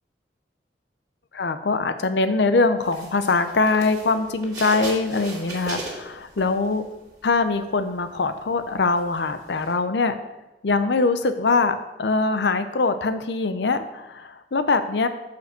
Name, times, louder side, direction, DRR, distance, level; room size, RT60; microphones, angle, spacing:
voice 1, 1.3-6.9 7.2-10.2 10.6-15.1, left 3 dB, 80° left, 11 dB, 0.6 m, -23 dB
sound 1, 2.8-7.0 7.4-9.7, right 2 dB, 20° right, 2.4 m, -37 dB
6.8 x 5.3 x 6.7 m, 1.0 s
head